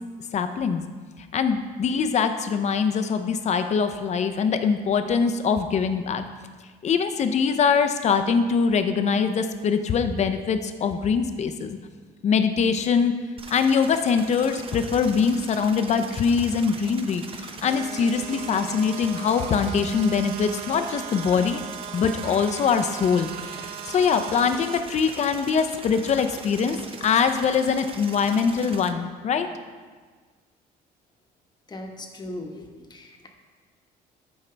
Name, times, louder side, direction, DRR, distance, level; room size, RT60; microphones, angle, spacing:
voice 1, 0.3-0.8 1.3-6.2 6.8-11.8 12.2-13.1 13.5-21.6 21.9-26.8 27.0-29.5, left 6 dB, 40° left, 8 dB, 0.6 m, -23 dB
sound 1, 13.4-28.9, right 4 dB, 35° right, 0.7 m, -41 dB
sound 2, 17.6-24.8, right 9 dB, 80° right, 0.6 m, -38 dB
voice 2, 31.7-33.3, left 1 dB, 25° left, 3 dB, 1.1 m, -38 dB
12.0 x 4.8 x 3.3 m, 1.5 s
cardioid pair, 110°, 17 cm